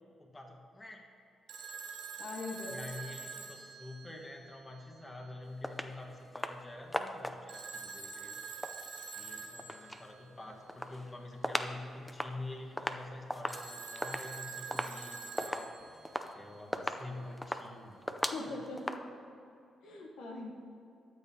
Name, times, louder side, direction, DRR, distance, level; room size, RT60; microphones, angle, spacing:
voice 1, 0.2-1.0 2.7-8.4 9.1-16.0 16.3-18.0 18.6-18.7, left 2 dB, 25° left, 1 dB, 1.3 m, -47 dB
Telephone, 1.5-4.6 7.5-10.0 13.5-16.1, right 5 dB, 70° right, 1.3 m, -45 dB
voice 2, 2.2-2.8 18.2-19.0 19.8-20.5, left 3 dB, 80° left, 1 dB, 0.9 m, -41 dB
sound 1, 5.6-5.9 6.4-6.6 6.9-7.6 8.4-10.1 10.4-11.8 12.1-19.0, left 1 dB, 10° left, 0.5 m, -38 dB
13.0 x 7.6 x 2.8 m, 2.7 s
cardioid pair, 75°, 0 cm